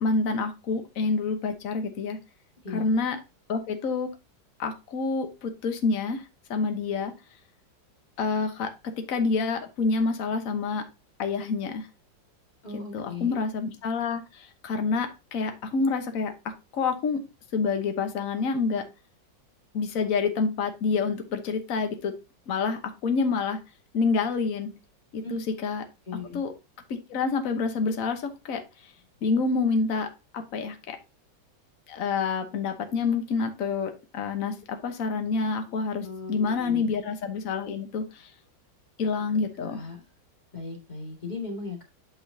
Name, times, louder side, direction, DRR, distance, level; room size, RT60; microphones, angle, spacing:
voice 1, 0.0-2.2 2.7-3.2 3.5-4.1 4.6-6.2 6.5-7.1 8.2-10.8 11.2-11.9 12.9-17.2 17.5-18.8 19.7-22.1 22.5-23.6 23.9-24.7 25.1-25.8 26.3-26.5 27.1-28.6 29.2-30.1 30.3-31.0 31.9-38.3 39.0-39.9, left 4 dB, 50° left, 6 dB, 1.3 m, -27 dB
voice 2, 2.6-3.0 12.6-13.4 25.2-25.4 26.1-26.4 36.0-36.9 39.6-40.0 40.5-41.8, left 4 dB, 25° left, 0 dB, 2.1 m, -37 dB
8.7 x 5.7 x 2.7 m, 0.27 s
omnidirectional pair, 2.0 m